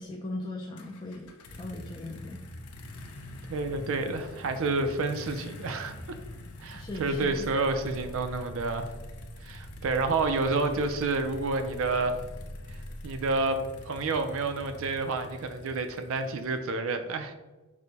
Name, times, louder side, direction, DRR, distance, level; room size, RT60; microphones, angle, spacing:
voice 1, 0.0-2.4 6.7-7.5, left 2 dB, 20° left, 0 dB, 0.3 m, -39 dB
sound 1, 0.8-16.7, left 1 dB, 85° left, 0.6 m, -46 dB
voice 2, 3.5-6.2 6.6-8.9 9.4-12.1 13.0-13.6 13.9-17.3, right 3 dB, 65° right, 8 dB, 0.4 m, -29 dB
sound 2, 6.8-13.5, equal, 50° left, 1.4 m, -45 dB
6.1 x 2.1 x 4.0 m, 1.2 s
head